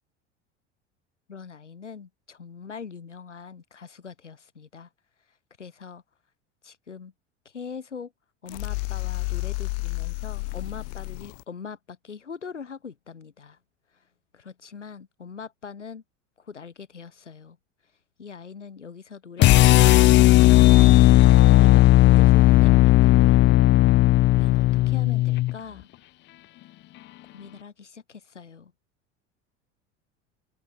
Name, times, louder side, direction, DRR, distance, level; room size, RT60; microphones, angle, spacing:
voice 1, 1.3-4.9 5.6-6.0 6.6-7.1 7.4-8.1 8.4-13.6 14.3-16.0 16.4-17.6 18.2-23.5 24.3-25.9 27.3-28.7, left 6 dB, 90° left, 6.2 m, -42 dB
sound 1, 8.5-11.4, left 32 dB, 60° left, 3.8 m, -31 dB
sound 2, 19.4-25.5, left 17 dB, 35° left, 0.4 m, -15 dB
open air
hypercardioid pair, 80°, 35 cm